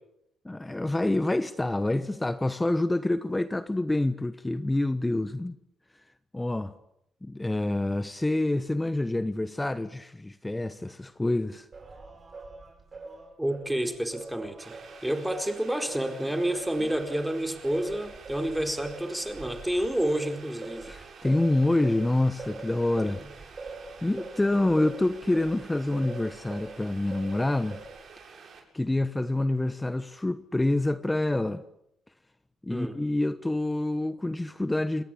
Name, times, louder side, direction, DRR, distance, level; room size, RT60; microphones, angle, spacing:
voice 1, 0.4-5.6 6.3-6.7 7.2-11.7 20.9-23.2 24.0-27.8 28.7-31.6 32.6-35.0, left 2 dB, 15° left, 1.1 m, -27 dB
Singing, 11.7-16.1 16.5-26.8 27.1-28.1, right 3 dB, 35° right, 7.5 m, -44 dB
voice 2, 13.4-14.8 15.0-20.9 23.0-23.3 32.7-33.0, right 1 dB, 5° right, 4.5 m, -29 dB
Boiling, 14.6-28.6, right 5 dB, 55° right, 7.8 m, -49 dB
28.0 x 21.0 x 8.7 m
cardioid pair, 90°, 0 cm